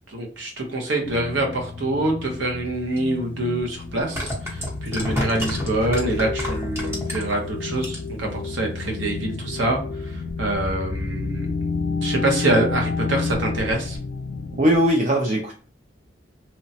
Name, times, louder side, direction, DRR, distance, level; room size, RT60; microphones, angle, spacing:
voice 1, 0.1-9.8 10.1-11.5 12.0-14.0, right 2 dB, 85° right, 1 dB, 0.8 m, -25 dB
sound 1, 1.0-14.9, left 4 dB, 70° left, 0.3 m, -30 dB
sound 2, 3.0-3.1 3.9-7.4 7.7-8.2 8.5-8.6, equal, 15° right, 0.8 m, -29 dB
voice 2, 14.6-15.5, equal, 40° right, -1 dB, 0.4 m, -19 dB
2.9 x 2.1 x 2.7 m, 0.42 s
head